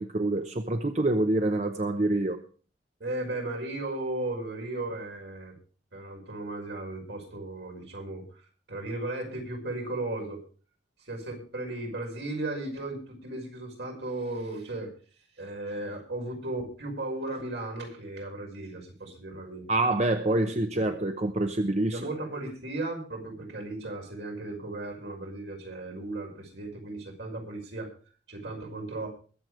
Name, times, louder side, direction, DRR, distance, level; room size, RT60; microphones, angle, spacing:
voice 1, 0.0-2.4 19.7-22.1, right 2 dB, 40° right, 7 dB, 0.8 m, -26 dB
voice 2, 3.0-5.6 5.9-8.3 8.7-10.4 11.1-14.9 15.4-19.7 20.7-20.9 21.9-27.9 28.3-29.1, right 2 dB, 75° right, 1 dB, 5.6 m, -36 dB
22.0 x 8.0 x 4.9 m, 0.41 s
head